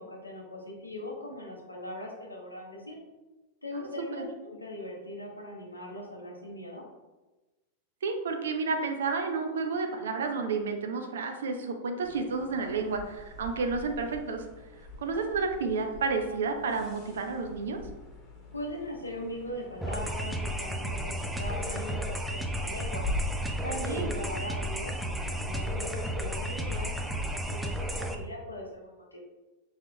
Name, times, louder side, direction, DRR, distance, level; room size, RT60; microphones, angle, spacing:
voice 1, 0.0-3.0 3.6-6.8 18.5-23.0 23.6-29.2, left 1 dB, 85° left, -2 dB, 0.9 m, -40 dB
voice 2, 3.7-4.3 8.0-14.5 15.0-17.8 23.9-24.1, right 4 dB, 65° right, 5 dB, 0.5 m, -31 dB
sound 1, 12.0-28.0, left 2 dB, 20° left, 1.3 m, -42 dB
sound 2, 19.8-28.1, equal, 5° right, 0.4 m, -33 dB
5.9 x 3.5 x 2.2 m, 1.1 s
figure-of-eight pair, 90°, 0 cm